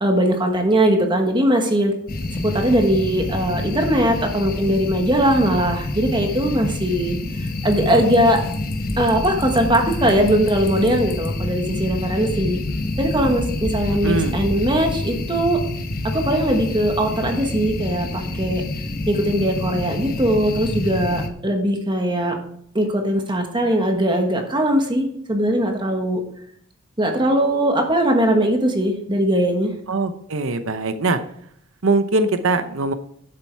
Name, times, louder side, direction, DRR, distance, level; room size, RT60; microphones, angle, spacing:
voice 1, 0.0-1.9 2.4-8.4 9.0-12.6 13.0-15.6 16.1-18.6 19.1-22.4 22.7-26.2 27.0-29.7, right 1 dB, 20° right, 3 dB, 1.3 m, -20 dB
sound 1, 2.1-21.3, left 2 dB, 45° left, 1.0 m, -27 dB
voice 2, 13.9-14.3 29.9-31.2 31.8-32.9, right 3 dB, 70° right, 10 dB, 0.8 m, -21 dB
11.5 x 7.5 x 4.6 m, 0.67 s
head